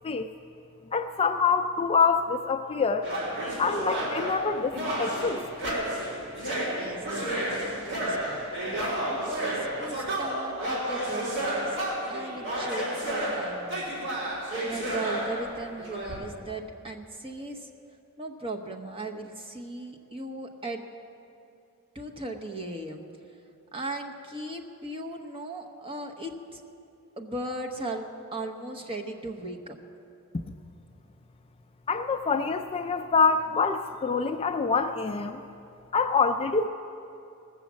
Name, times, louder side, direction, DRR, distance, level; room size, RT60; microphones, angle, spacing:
voice 1, 0.9-3.1 3.6-5.4 31.9-35.4 35.9-36.7, left 5 dB, 25° left, 7 dB, 0.3 m, -25 dB
sound 1, 3.0-16.1, right 1 dB, 60° right, 3.7 m, -31 dB
voice 2, 6.7-8.4 9.1-11.8 12.1-13.9 14.7-17.7 18.2-20.8 21.9-23.0 23.7-26.6 27.2-29.8, right 2 dB, 25° right, 3 dB, 1.0 m, -37 dB
18.0 x 7.1 x 7.4 m, 2.6 s
head